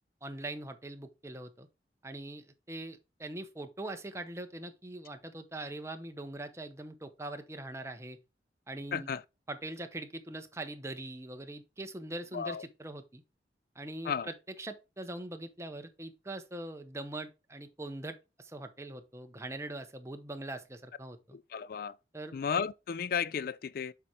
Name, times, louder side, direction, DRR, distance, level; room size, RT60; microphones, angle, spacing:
voice 1, 0.2-1.7 2.0-8.2 8.7-9.1 9.5-13.2 13.7-21.4 22.1-22.3, right 1 dB, 15° right, 0.8 m, -42 dB
voice 2, 8.9-9.2 12.3-12.6 14.0-14.3 21.3-22.0 22.3-23.9, left 6 dB, 55° left, 0.4 m, -34 dB
6.9 x 4.3 x 4.6 m
head